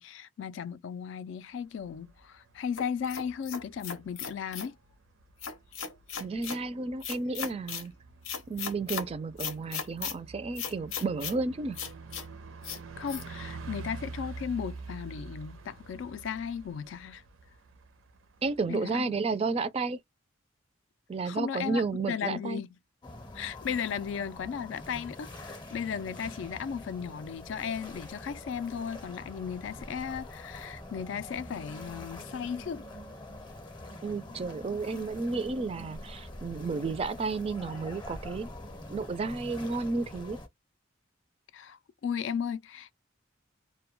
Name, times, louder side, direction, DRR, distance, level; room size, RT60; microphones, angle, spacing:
voice 1, 0.0-4.8 13.0-17.2 18.7-19.2 21.2-22.7 23.3-32.8 41.5-42.9, left 7 dB, 65° left, 0.3 m, -36 dB
Bus, 1.6-18.7, right 4 dB, 85° right, 0.5 m, -47 dB
sound 1, 2.8-4.7 5.4-6.6 7.0-7.9 8.2-9.1 9.4-10.1 10.6-11.4 11.7-12.2 12.6-12.8 13.1-13.2, left 7 dB, 90° left, 0.7 m, -37 dB
voice 2, 6.2-7.9 8.5-11.8 18.4-20.0 21.1-22.6 34.0-38.5 38.9-40.4, right 4 dB, 30° right, 0.3 m, -32 dB
sound 2, 23.0-40.5, left 1 dB, 20° left, 0.6 m, -45 dB
2.2 x 2.1 x 3.0 m
head